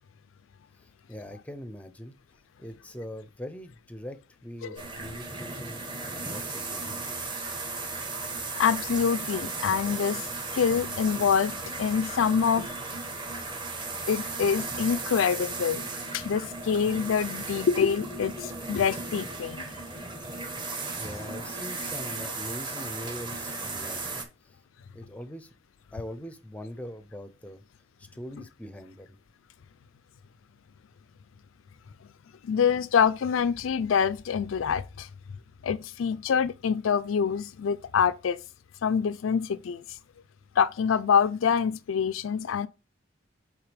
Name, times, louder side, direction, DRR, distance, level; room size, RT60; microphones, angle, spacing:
voice 1, 0.8-2.1 2.6-7.1 21.0-24.1 24.4-24.6 24.9-25.5 25.9-27.6 28.0-29.2, equal, 5° left, 0.6 m, -42 dB
sound 1, 4.8-24.2, right 3 dB, 25° right, 1.2 m, -36 dB
voice 2, 8.6-10.3 10.5-12.8 14.1-15.8 16.1-19.6 32.4-35.1 35.6-38.4 38.8-39.8 40.6-42.7, left 7 dB, 85° left, 0.4 m, -26 dB
8.0 x 3.8 x 3.4 m
head